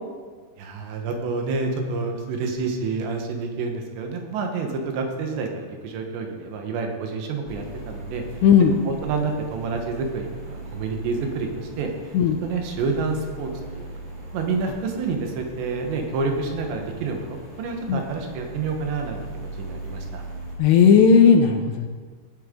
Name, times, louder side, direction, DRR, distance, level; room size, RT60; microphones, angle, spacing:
voice 1, 0.6-8.2 8.8-11.9 12.4-13.9 14.3-20.2, right 4 dB, 75° right, 3 dB, 3.3 m, -28 dB
sound 1, 7.4-20.5, right 2 dB, 45° right, 0.6 m, -39 dB
voice 2, 8.4-8.8 12.1-12.4 17.9-18.0 20.6-21.9, left 6 dB, 80° left, 4 dB, 2.6 m, -15 dB
17.5 x 8.7 x 3.7 m, 1.5 s
omnidirectional pair, 5.4 m